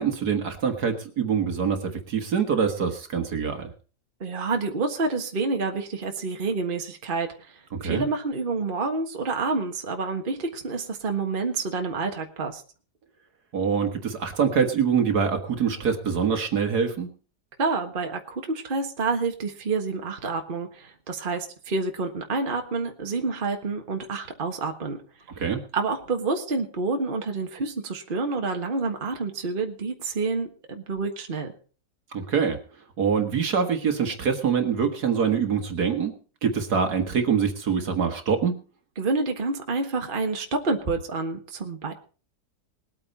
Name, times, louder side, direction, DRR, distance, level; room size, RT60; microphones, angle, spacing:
voice 1, 0.0-3.7 7.7-8.0 13.5-17.1 25.4-25.6 32.1-32.6 33.0-36.1 36.4-38.6, right 6 dB, 60° right, 6 dB, 2.0 m, -24 dB
voice 2, 4.2-12.6 17.6-25.0 25.7-31.5 39.0-41.9, right 3 dB, 30° right, 3 dB, 1.6 m, -28 dB
20.5 x 8.8 x 4.2 m, 0.38 s
omnidirectional pair, 1.9 m